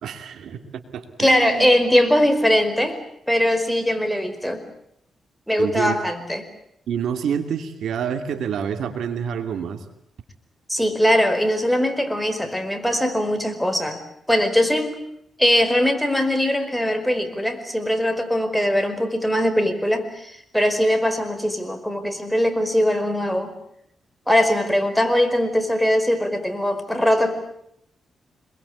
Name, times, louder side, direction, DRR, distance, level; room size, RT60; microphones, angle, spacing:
voice 1, 0.0-1.7 5.6-6.0 6.9-9.8, right 7 dB, 85° right, 8 dB, 2.7 m, -28 dB
voice 2, 1.2-3.0 3.3-4.6 5.5-6.5 10.7-14.0 14.3-14.9 15.4-23.5 24.3-27.3, equal, ahead, 8 dB, 5.1 m, -21 dB
26.5 x 23.0 x 8.7 m, 0.75 s
cardioid pair, 75°, 0 cm